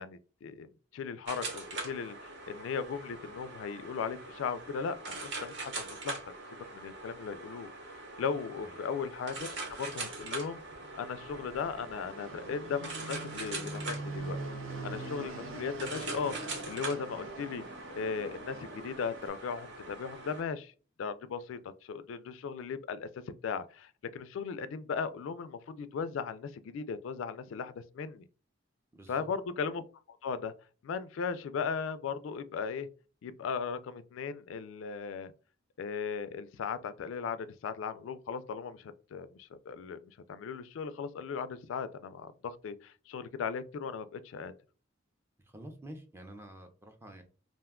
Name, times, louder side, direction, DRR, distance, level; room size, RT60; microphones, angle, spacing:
voice 1, 0.0-6.2 6.5-7.7 8.2-10.6 11.0-14.4 14.8-17.6 17.9-20.7 21.0-23.1 23.4-28.2 29.1-29.8 30.1-30.5 30.8-32.9 33.2-35.3 35.8-44.5, left 6 dB, 80° left, 0.3 m, -37 dB
sound 1, 1.3-20.4, right 3 dB, 60° right, 1.0 m, -43 dB
Fixed-wing aircraft airplane, 9.1-19.3, right 2 dB, 90° right, 0.6 m, -44 dB
voice 2, 28.9-29.3 45.4-47.2, right 1 dB, 15° right, 0.5 m, -48 dB
2.5 x 2.2 x 3.5 m
head